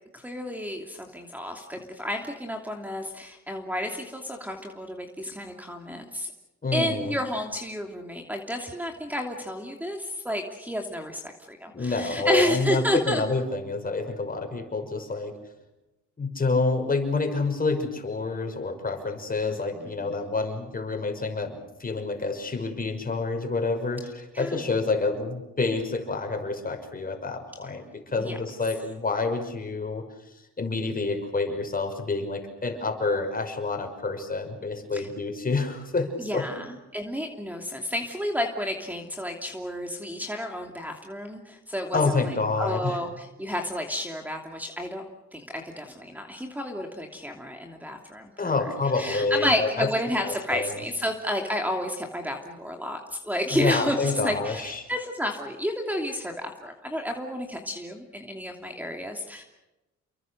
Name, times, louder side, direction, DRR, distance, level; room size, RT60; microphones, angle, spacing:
voice 1, 0.1-6.3 6.7-13.2 19.5-20.2 24.3-24.6 28.2-28.4 34.9-35.1 36.2-45.0 45.3-48.5 48.9-59.4, equal, 5° right, 3 dB, 2.9 m, -31 dB
voice 2, 6.6-7.1 11.7-15.4 16.2-30.1 30.6-36.6 41.9-43.0 48.4-49.9 50.2-50.8 53.5-54.9, left 3 dB, 30° left, 5 dB, 6.2 m, -28 dB
29.5 x 23.0 x 6.7 m, 1.0 s
cardioid pair, 90°, 30 cm